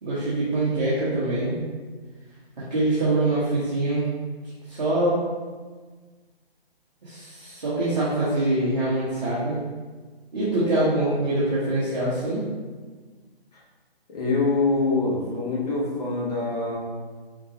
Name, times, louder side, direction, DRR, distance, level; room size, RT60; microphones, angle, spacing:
voice 1, 0.0-1.5 2.7-4.1 4.7-5.2 7.0-9.6 10.3-12.4, right 2 dB, 45° right, -10 dB, 1.3 m, -24 dB
voice 2, 14.1-16.8, left 3 dB, 40° left, -5 dB, 1.3 m, -24 dB
5.7 x 3.2 x 2.9 m, 1.4 s
figure-of-eight pair, 150°, 31 cm